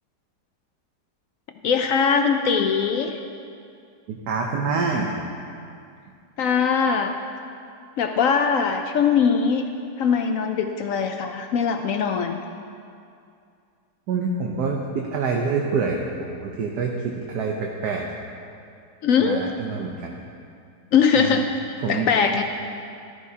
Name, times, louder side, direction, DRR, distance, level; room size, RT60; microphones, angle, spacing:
voice 1, 1.6-3.2 6.4-7.1 8.0-9.7 10.0-12.4 19.0-19.5 20.9-22.4, left 6 dB, 70° left, 6 dB, 0.8 m, -21 dB
voice 2, 4.1-5.2 14.1-18.1 19.2-20.2 21.2-21.4 21.8-22.1, right 4 dB, 70° right, 0 dB, 1.3 m, -26 dB
15.0 x 12.5 x 2.8 m, 2.4 s
omnidirectional pair, 1.9 m